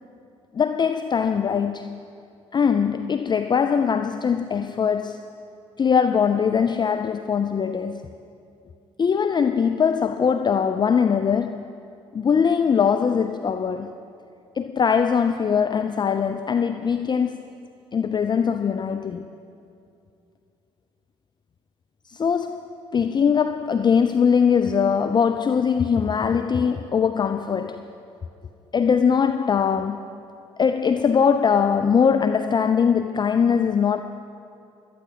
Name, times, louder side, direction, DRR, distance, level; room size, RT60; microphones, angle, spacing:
voice 1, 0.5-2.0 2.5-5.3 5.8-8.1 9.0-11.7 12.1-13.9 14.6-17.4 17.9-19.3 22.1-27.9 28.7-30.2 30.6-34.0, left 6 dB, 30° left, 0.5 m, -21 dB
17.5 x 13.0 x 4.1 m
figure-of-eight pair, 45°, 14 cm